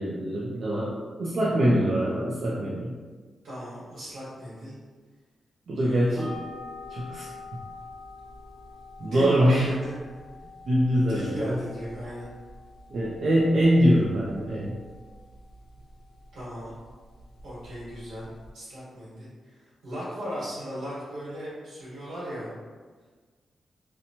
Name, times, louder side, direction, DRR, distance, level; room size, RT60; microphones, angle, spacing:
voice 1, 0.0-2.9 5.7-6.3 6.9-7.3 9.0-9.8 10.7-11.6 12.9-14.7, equal, 55° right, -6 dB, 0.4 m, -23 dB
voice 2, 3.4-4.8 5.8-6.1 9.0-9.9 10.9-12.3 16.3-16.7 17.4-19.6 19.8-22.5, equal, 90° right, -8 dB, 1.3 m, -36 dB
sound 1, 6.2-18.5, left 2 dB, 25° left, 1.0 m, -46 dB
2.8 x 2.2 x 2.7 m, 1.4 s
wide cardioid pair, 150°, 0 cm